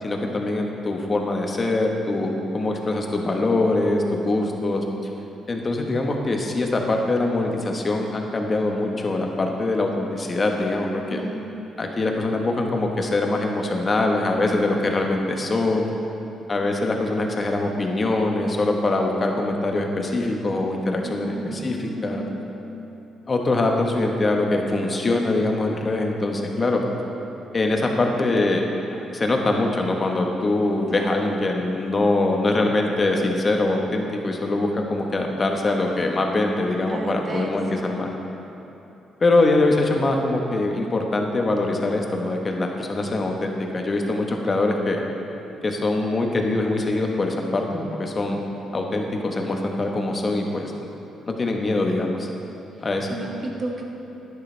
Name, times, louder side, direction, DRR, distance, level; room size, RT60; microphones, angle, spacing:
voice 1, 0.0-4.8 5.5-11.2 11.8-15.9 16.5-22.2 23.3-26.8 27.5-28.6 29.0-38.1 39.2-45.0 45.6-48.4 48.7-50.7 51.3-52.3 52.8-53.1, left 2 dB, 35° left, 2 dB, 1.2 m, -23 dB
voice 2, 11.1-11.6 21.0-22.4 30.9-31.4 36.9-38.0 53.1-53.8, right 2 dB, 40° right, 0 dB, 1.5 m, -34 dB
11.0 x 10.5 x 3.4 m, 2.9 s
cardioid pair, 90°, 0 cm